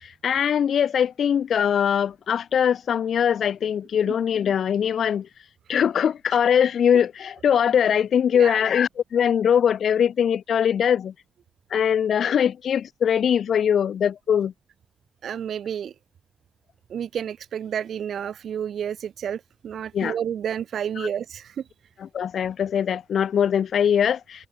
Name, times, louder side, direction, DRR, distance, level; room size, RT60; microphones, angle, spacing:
voice 1, 0.0-5.3 5.7-11.1 11.7-14.5 19.9-20.2 21.0-21.1 22.0-24.5, left 8 dB, 75° left, 0.8 m, -22 dB
voice 2, 15.2-15.9 16.9-21.5, right 8 dB, 80° right, 0.5 m, -30 dB
wide cardioid pair, 135°, 0 cm